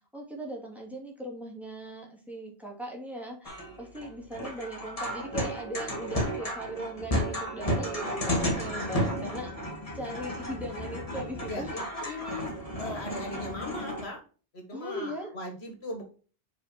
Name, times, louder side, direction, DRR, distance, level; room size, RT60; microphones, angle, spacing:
voice 1, 0.1-11.8 14.7-15.3, right 1 dB, ahead, -1 dB, 2.5 m, -39 dB
sound 1, 3.4-14.0, equal, 35° left, 2.1 m, -33 dB
voice 2, 11.5-12.5 12.8-14.2 14.5-16.0, left 2 dB, 80° left, 3 dB, 2.2 m, -39 dB
6.7 x 5.1 x 4.4 m, 0.37 s
omnidirectional pair, 1.1 m